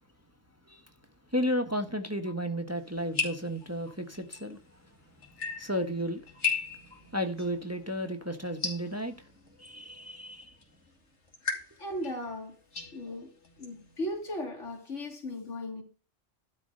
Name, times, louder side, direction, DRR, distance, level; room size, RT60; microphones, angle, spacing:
voice 1, 1.3-4.6 5.6-6.2 6.9-9.1 9.6-10.5, equal, 15° right, 1.2 m, -33 dB
sound 1, 2.8-14.4, left 5 dB, 70° left, 2.9 m, -39 dB
voice 2, 11.8-12.6 12.9-13.3 13.6-15.8, left 1 dB, 90° left, 3.1 m, -36 dB
12.0 x 4.5 x 6.6 m
omnidirectional pair, 1.2 m